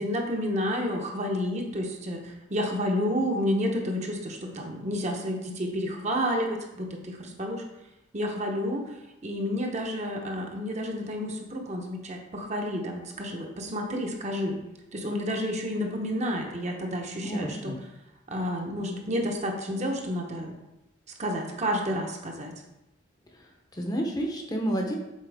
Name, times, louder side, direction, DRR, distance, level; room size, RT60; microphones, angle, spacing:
voice 1, 0.0-7.6 8.1-9.0 9.2-14.6 14.9-17.7 18.3-20.5 21.2-22.5, equal, 35° right, 2 dB, 0.8 m, -30 dB
voice 2, 17.2-17.8 23.4-25.0, right 1 dB, 20° left, 1 dB, 0.7 m, -30 dB
7.4 x 4.3 x 3.5 m, 0.92 s
head